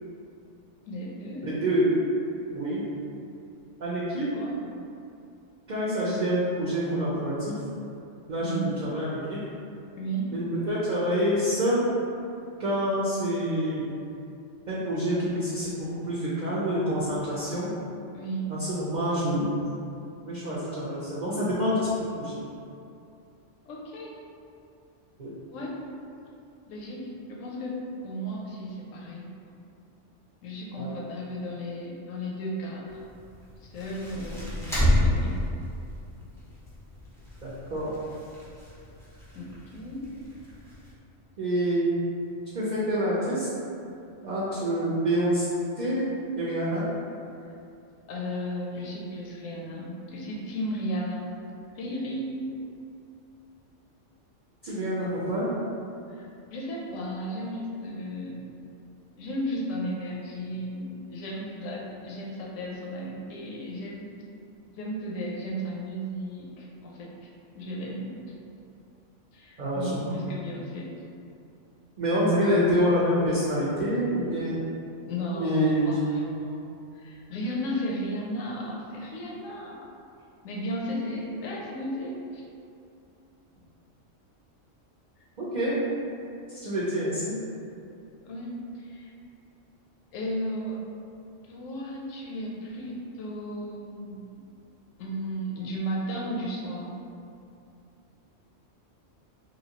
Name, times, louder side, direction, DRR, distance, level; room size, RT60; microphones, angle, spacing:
voice 1, 0.8-1.6 4.3-4.6 8.4-8.7 10.0-10.3 18.1-18.5 23.7-24.2 25.5-25.9 26.7-29.3 30.4-33.0 33.6-34.6 35.0-35.4 39.3-40.1 48.1-51.3 51.7-52.6 54.6-54.8 56.1-58.5 59.2-64.1 64.7-67.3 67.6-68.1 69.3-70.9 75.1-79.9 80.4-82.4 88.2-89.1 90.1-90.8 91.5-94.4 95.0-96.9, equal, 85° left, -3 dB, 1.0 m, -34 dB
voice 2, 1.4-2.0 2.5-2.8 3.8-4.3 5.7-7.6 8.3-9.4 10.3-11.9 12.6-13.9 14.7-17.7 18.5-19.5 20.2-22.4 25.2-25.3 30.8-30.9 37.4-37.9 41.4-41.9 42.5-43.5 44.2-45.5 45.8-46.1 46.3-46.9 54.6-55.5 69.6-70.2 72.0-74.6 75.3-76.0 85.4-85.8 86.5-87.3, equal, 55° right, -9 dB, 0.5 m, -27 dB
sound 1, 32.9-40.9, left 1 dB, 5° left, 0.4 m, -31 dB
3.1 x 2.6 x 2.8 m, 2.6 s
omnidirectional pair, 1.3 m